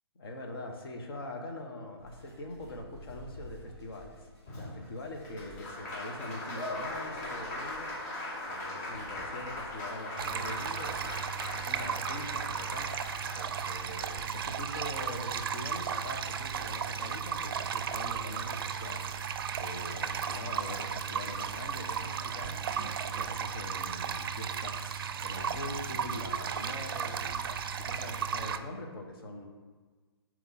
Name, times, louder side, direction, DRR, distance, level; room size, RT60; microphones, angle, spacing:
voice 1, 0.2-4.3 4.6-7.9 8.5-19.3 19.6-22.6 23.0-27.5 27.8-29.5, left 1 dB, 55° left, 3 dB, 1.1 m, -43 dB
sound 1, 2.0-12.0, equal, 85° left, 2.1 m, -54 dB
Applause, 4.5-14.7 16.1-16.2 16.5-17.5, left 1 dB, 40° left, 1.4 m, -40 dB
sound 2, 10.2-28.6, right 7 dB, 55° right, 0.4 m, -35 dB
7.0 x 4.5 x 4.1 m, 1.4 s
figure-of-eight pair, 135°, 14 cm